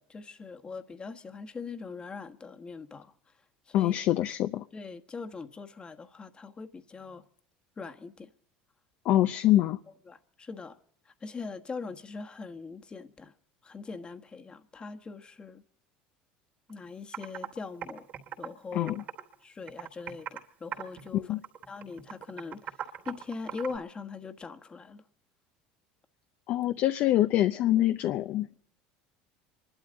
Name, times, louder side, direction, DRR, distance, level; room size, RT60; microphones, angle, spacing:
voice 1, 0.0-3.1 3.7-3.9 4.7-7.2 7.8-8.3 10.1-10.8 11.0-13.3 13.6-15.6 16.7-18.1 18.4-19.0 19.4-21.3 21.7-25.0, left 4 dB, 25° left, 1.3 m, -41 dB
voice 2, 3.7-4.7 9.0-9.8 18.7-19.0 21.1-21.4 26.5-28.5, left 13 dB, 55° left, 0.6 m, -25 dB
Computer keyboard, 16.7-16.8 17.1-17.5 17.8-19.3 19.7-20.4 20.7-21.1 21.4-23.8, right 9 dB, 45° right, 2.9 m, -40 dB
26.5 x 12.0 x 3.9 m
supercardioid pair, 105°, 4 cm